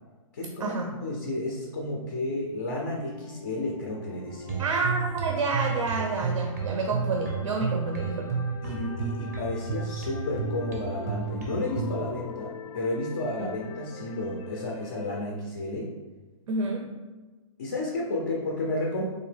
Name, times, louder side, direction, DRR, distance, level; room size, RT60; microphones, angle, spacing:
voice 1, 0.3-4.7 8.6-15.9 17.6-19.0, left 2 dB, 30° left, -1 dB, 0.4 m, -32 dB
sound 1, 0.8-15.3, left 5 dB, 85° left, 0.5 m, -43 dB
sound 2, 4.5-12.0, right 5 dB, 30° right, 0.5 m, -32 dB
voice 2, 4.6-8.4 16.5-16.9, right 3 dB, 85° right, 2 dB, 0.6 m, -29 dB
3.6 x 2.8 x 3.2 m, 1.2 s
hypercardioid pair, 180°, 17 cm